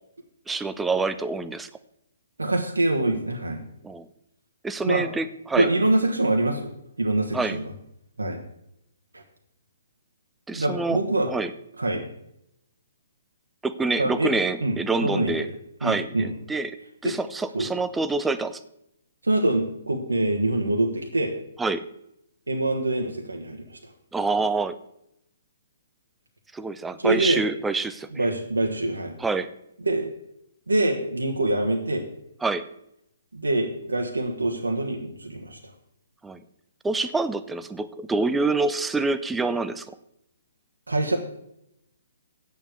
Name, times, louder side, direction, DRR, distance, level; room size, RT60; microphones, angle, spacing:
voice 1, 0.5-1.7 3.8-4.1 4.6-5.7 7.3-7.6 10.5-11.0 11.3-11.5 13.6-15.5 15.8-16.8 17.0-18.6 21.6-21.8 24.1-24.8 26.5-28.3 29.2-29.5 32.4-32.6 36.2-36.4 36.8-39.9, right 3 dB, 10° right, 12 dB, 0.6 m, -26 dB
voice 2, 2.4-3.6 4.8-5.0 5.6-7.7 8.2-8.4 9.1-9.2 10.5-11.3 11.8-12.0 14.0-14.3 14.6-15.5 15.8-16.3 17.0-17.1 17.5-17.7 19.2-21.3 22.5-23.8 27.0-27.4 28.1-29.2 29.8-30.1 30.7-32.1 33.3-35.6 40.9-41.2, right 2 dB, 90° right, 2 dB, 1.4 m, -25 dB
8.4 x 7.0 x 8.0 m, 0.79 s
figure-of-eight pair, 130°, 0 cm